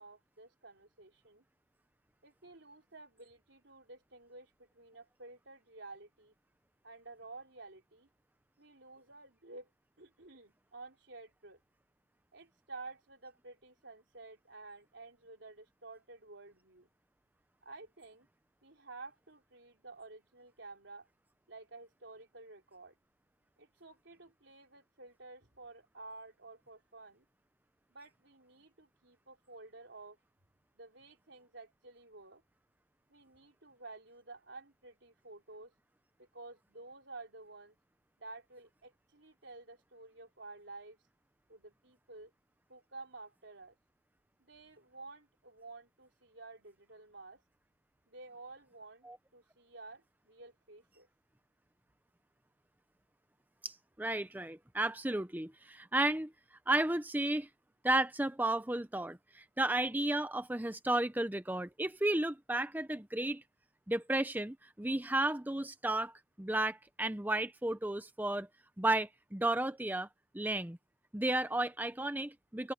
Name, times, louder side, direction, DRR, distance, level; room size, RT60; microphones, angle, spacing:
voice 1, 0.0-1.4 2.2-6.3 6.8-8.1 8.6-9.7 10.0-11.6 12.3-16.9 17.6-18.3 18.6-21.1 21.5-22.9 23.6-27.2 27.9-30.2 30.8-32.4 33.1-35.7 36.2-37.8 38.2-41.0 41.5-42.3 42.7-43.8 44.4-47.4 48.1-51.1, right 3 dB, 80° right, 3.7 m, -52 dB
voice 2, 53.6-56.3 56.7-57.5 57.8-63.4 63.9-68.5 68.8-70.1 70.3-70.8 71.1-72.7, right 1 dB, 10° right, 0.6 m, -33 dB
open air
head